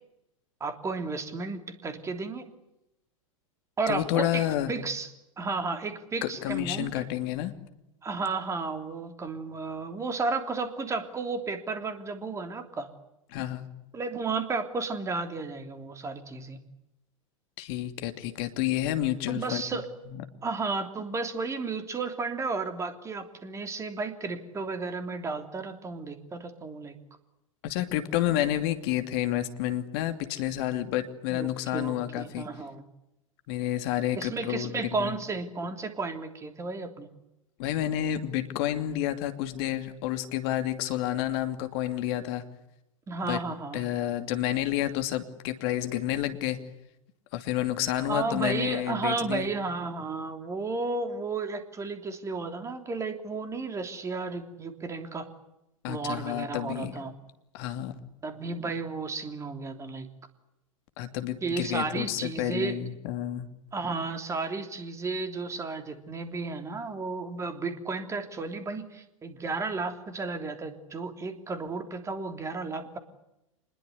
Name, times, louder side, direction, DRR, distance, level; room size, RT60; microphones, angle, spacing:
voice 1, 0.6-2.5 3.8-5.1 5.4-6.9 8.0-12.9 13.9-16.6 19.3-19.9 20.4-27.0 31.3-32.8 34.2-37.1 43.1-43.8 48.1-55.3 55.9-57.1 58.2-60.1 61.4-62.8 63.7-73.0, right 3 dB, 15° right, 8 dB, 3.3 m, -33 dB
voice 2, 3.9-4.7 6.2-7.5 13.3-13.7 17.6-19.6 20.1-20.2 27.6-32.5 33.5-35.1 37.6-42.4 43.3-43.4 43.7-46.6 47.3-49.5 55.8-57.0 57.5-57.9 61.0-63.5, left 13 dB, 45° left, 8 dB, 2.8 m, -30 dB
26.5 x 21.5 x 8.3 m, 0.88 s
figure-of-eight pair, 95°, 18 cm